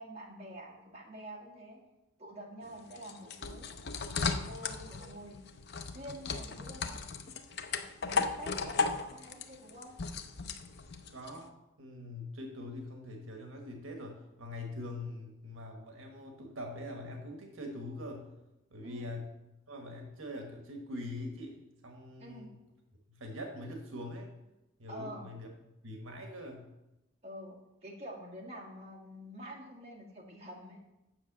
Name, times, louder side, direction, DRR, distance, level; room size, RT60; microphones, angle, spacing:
voice 1, 0.0-1.8 2.2-3.7 4.1-5.4 5.8-7.0 7.7-9.9 18.8-19.1 22.2-22.5 24.9-25.3 27.2-30.8, equal, 30° right, -1 dB, 1.7 m, -47 dB
sound 1, 2.6-11.4, left 4 dB, 50° left, 0.6 m, -36 dB
voice 2, 11.1-11.5 11.8-18.3 18.7-19.3 19.7-21.6 21.8-22.5 23.1-24.3 24.8-25.5 25.8-26.7, left 1 dB, 75° right, 3 dB, 1.3 m, -43 dB
7.6 x 6.0 x 7.2 m, 0.95 s
head